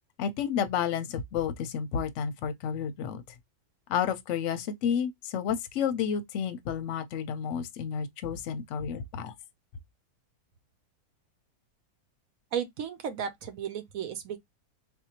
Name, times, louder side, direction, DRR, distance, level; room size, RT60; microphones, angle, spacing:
voice 1, 0.2-3.2 3.9-9.3, left 7 dB, 60° left, 0.9 m, -31 dB
voice 2, 12.5-14.4, right 8 dB, 65° right, 1.0 m, -34 dB
4.1 x 2.6 x 2.8 m
omnidirectional pair, 1.7 m